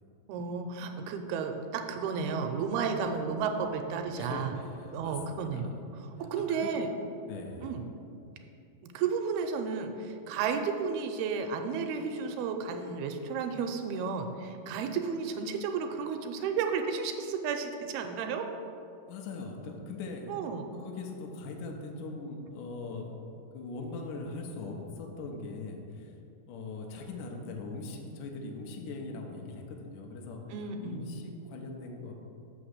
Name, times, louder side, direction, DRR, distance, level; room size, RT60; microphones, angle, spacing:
voice 1, 0.3-4.5 4.9-5.7 6.3-6.9 7.6-7.8 8.9-18.5 20.3-20.7 30.5-31.0, right 5 dB, 80° right, 5 dB, 2.4 m, -32 dB
voice 2, 4.2-5.8 6.3-6.7 7.2-7.8 19.1-20.3 20.8-23.2 23.5-26.1 26.5-30.4 30.8-32.1, left 3 dB, 80° left, 1 dB, 1.9 m, -41 dB
6.4 x 5.9 x 6.4 m, 2.7 s
omnidirectional pair, 4.6 m